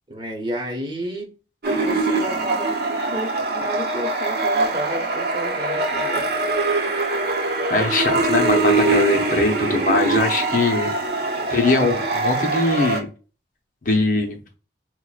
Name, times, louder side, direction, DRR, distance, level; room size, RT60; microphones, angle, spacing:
voice 1, 0.1-1.4 1.7-2.8 3.1-6.5 11.3-11.8, equal, 25° right, 0 dB, 1.0 m, -31 dB
sound 1, 1.6-13.0, right 2 dB, 55° right, 0.8 m, -23 dB
voice 2, 7.7-10.9 11.5-13.1 13.8-14.4, left 2 dB, 45° left, 3 dB, 0.6 m, -21 dB
5.8 x 2.1 x 2.3 m, 0.35 s
head